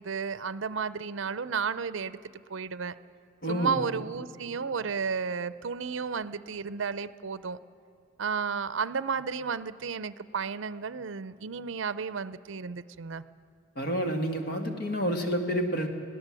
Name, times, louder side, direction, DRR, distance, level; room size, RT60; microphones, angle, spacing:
voice 1, 0.0-2.9 3.5-7.6 8.2-13.2, right 5 dB, 70° right, 16 dB, 0.5 m, -33 dB
voice 2, 3.4-3.8 13.8-15.9, equal, 50° left, 4 dB, 2.1 m, -29 dB
20.5 x 16.5 x 7.6 m, 2.7 s
head